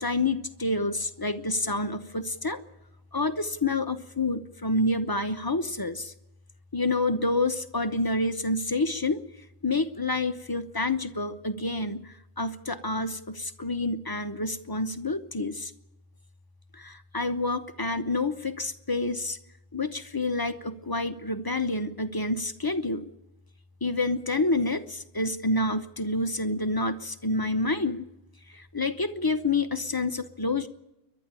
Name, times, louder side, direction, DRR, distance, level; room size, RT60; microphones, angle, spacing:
voice 1, 0.0-2.6 3.1-6.1 6.7-9.2 9.6-12.0 12.4-15.7 16.8-19.4 19.7-23.0 23.8-28.0 28.7-30.7, left 2 dB, 20° left, 9 dB, 0.7 m, -28 dB
28.5 x 11.5 x 9.0 m, 0.90 s
omnidirectional pair, 1.3 m